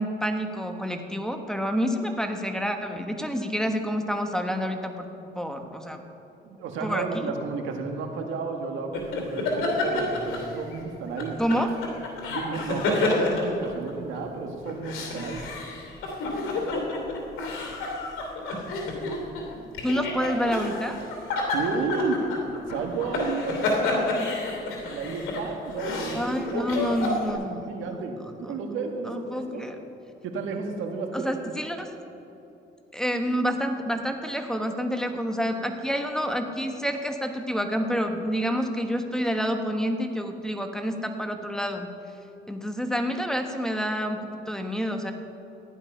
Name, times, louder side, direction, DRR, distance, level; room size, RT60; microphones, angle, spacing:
voice 1, 0.0-5.1 5.3-6.0 6.8-7.1 11.4-11.7 19.8-21.0 26.1-27.7 28.4-28.5 29.0-29.8 31.1-31.9 32.9-41.9 42.5-45.1, equal, 5° left, 5 dB, 1.3 m, -28 dB
voice 2, 6.4-11.4 12.3-15.4 21.5-22.2 22.7-24.1 24.9-26.9 27.3-29.6 30.2-31.5, right 4 dB, 90° right, 3 dB, 1.6 m, -32 dB
sound 1, 8.9-10.8 11.2-14.2 14.7-27.3, left 2 dB, 90° left, 2.9 m, -29 dB
15.0 x 11.0 x 5.6 m, 3.0 s
cardioid pair, 90°, 20 cm